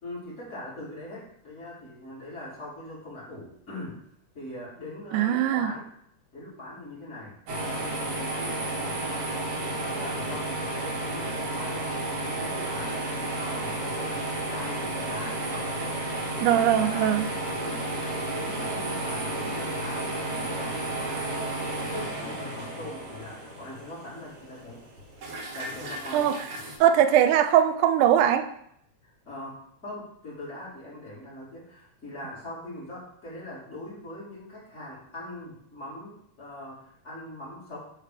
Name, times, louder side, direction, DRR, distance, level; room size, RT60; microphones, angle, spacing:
voice 1, 0.0-4.0 4.3-5.9 6.3-7.3 7.6-9.3 9.7-16.0 16.6-17.1 17.5-24.8 25.5-26.3 29.0-37.8, left 1 dB, 25° left, -7 dB, 2.6 m, -41 dB
voice 2, 5.1-5.7 16.4-17.3 26.1-26.3 26.8-28.5, right 10 dB, 80° right, 9 dB, 2.0 m, -21 dB
sound 1, 7.5-26.8, right 2 dB, 55° right, 2.0 m, -32 dB
8.8 x 3.5 x 5.0 m, 0.71 s
omnidirectional pair, 3.6 m